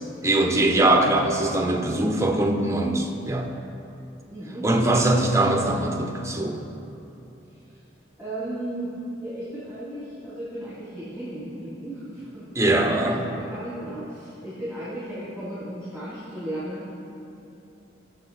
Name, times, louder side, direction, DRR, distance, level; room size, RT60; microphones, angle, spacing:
voice 1, 0.2-3.5 4.6-6.6 12.6-13.2, right 1 dB, 15° right, 1 dB, 0.9 m, -22 dB
voice 2, 4.3-4.7 7.5-7.8 8.2-8.9 9.2-12.9 13.2-17.0, right 1 dB, 5° left, -12 dB, 2.8 m, -35 dB
16.0 x 6.9 x 4.1 m, 2.9 s
head